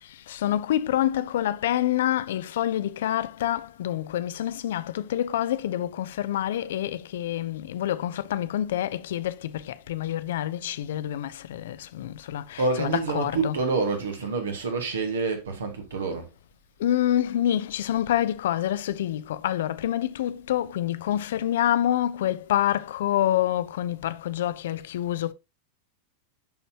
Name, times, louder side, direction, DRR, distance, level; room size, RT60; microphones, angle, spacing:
voice 1, 0.3-13.6 16.8-25.3, left 12 dB, 60° left, 0.6 m, -27 dB
voice 2, 12.6-16.3, right 4 dB, 65° right, 1.7 m, -27 dB
11.5 x 4.1 x 2.9 m
figure-of-eight pair, 90°, 0 cm